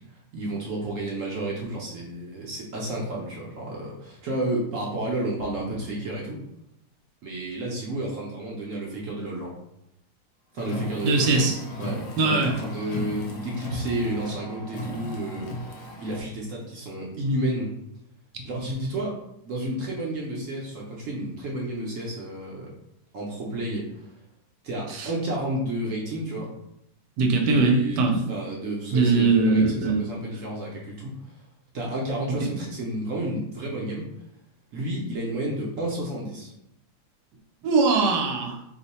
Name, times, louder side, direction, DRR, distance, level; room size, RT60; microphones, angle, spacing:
voice 1, 0.3-6.4 7.2-9.5 10.5-17.7 18.4-19.2 19.4-22.7 23.1-24.1 24.6-26.5 27.5-31.3 31.7-34.1 34.7-36.5, right 1 dB, 65° right, -3 dB, 0.9 m, -31 dB
Car, 10.6-16.2, left 1 dB, 70° left, 1.1 m, -35 dB
voice 2, 11.0-11.5 12.2-12.5 24.9-25.1 27.2-28.3 28.9-30.0 32.4-32.5 37.6-38.6, right 3 dB, 80° right, 2 dB, 1.2 m, -21 dB
3.0 x 2.1 x 4.0 m, 0.79 s
omnidirectional pair, 1.8 m